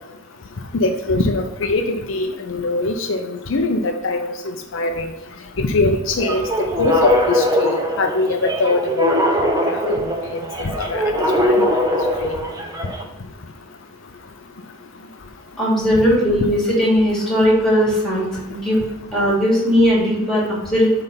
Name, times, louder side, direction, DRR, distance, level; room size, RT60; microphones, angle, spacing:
voice 1, 0.7-4.3 4.7-5.1 5.6-6.4 6.8-9.9 10.3-11.0 11.4-11.8 12.2-12.3, left 2 dB, 60° left, 5 dB, 0.5 m, -22 dB
sound 1, 6.2-13.0, equal, 15° right, 0.8 m, -21 dB
voice 2, 15.6-18.8 19.1-20.9, equal, ahead, -5 dB, 2.8 m, -18 dB
7.9 x 3.4 x 5.6 m, 0.98 s
head